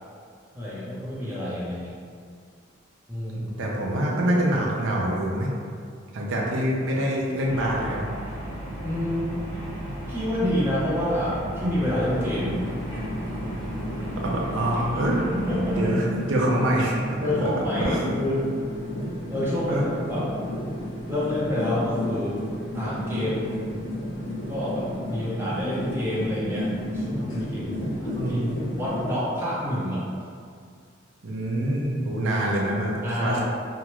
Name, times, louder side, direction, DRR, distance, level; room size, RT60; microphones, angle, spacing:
voice 1, 0.5-1.9 3.1-3.5 8.8-9.4 10.1-12.7 15.3-15.9 17.2-18.5 19.3-20.3 21.1-22.4 22.7-23.6 24.5-28.4 28.8-30.3 33.0-33.4, left 1 dB, 10° right, -9 dB, 0.7 m, -28 dB
voice 2, 3.3-5.5 6.1-8.1 14.2-15.3 15.8-18.1 19.7-19.8 25.1-25.2 28.1-28.5 31.2-33.4, right 1 dB, 80° right, -3 dB, 0.5 m, -25 dB
sound 1, 7.4-15.9, equal, 20° left, 1.3 m, -35 dB
sound 2, 11.8-29.0, left 1 dB, 90° left, 0.7 m, -32 dB
2.8 x 2.3 x 2.9 m, 2.2 s
head